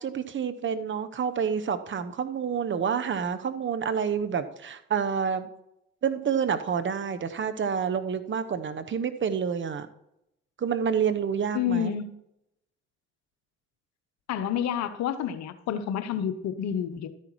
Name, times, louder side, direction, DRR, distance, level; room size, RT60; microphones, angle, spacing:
voice 1, 0.0-5.5 6.0-9.9 10.6-11.9, right 7 dB, 40° right, 10 dB, 1.0 m, -28 dB
voice 2, 11.5-12.1 14.3-17.1, left 9 dB, 65° left, 11 dB, 0.8 m, -29 dB
12.5 x 10.0 x 3.1 m, 0.82 s
hypercardioid pair, 55°, 29 cm